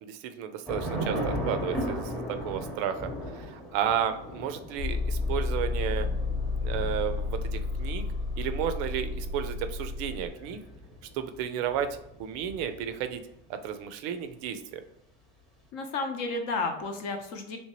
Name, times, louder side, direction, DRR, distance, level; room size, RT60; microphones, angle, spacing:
voice 1, 0.0-6.1 6.6-8.0 8.4-10.6 11.1-13.2 13.5-14.8, right 9 dB, 50° right, 9 dB, 0.4 m, -33 dB
Thunder / Rain, 0.7-13.2, equal, ahead, 0.8 m, -38 dB
sound 1, 4.8-10.3, left 3 dB, 70° left, 1.0 m, -31 dB
voice 2, 15.7-17.6, left 3 dB, 50° left, 4 dB, 0.8 m, -32 dB
3.3 x 2.8 x 3.0 m, 0.80 s
supercardioid pair, 135°, 31 cm